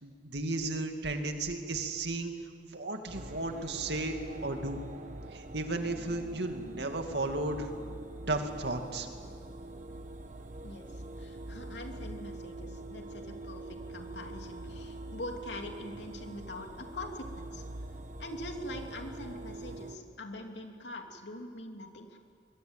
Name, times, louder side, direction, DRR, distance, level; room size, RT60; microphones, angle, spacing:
voice 1, 0.0-2.3 2.6-4.2 4.4-4.8 5.3-7.7 8.3-9.1, right 2 dB, 70° right, 5 dB, 2.4 m, -34 dB
sound 1, 3.1-20.0, right 2 dB, 45° right, 1.3 m, -44 dB
voice 2, 10.6-17.6 18.2-22.2, left 1 dB, 85° left, 3 dB, 2.9 m, -43 dB
25.0 x 21.5 x 9.0 m, 2.2 s
head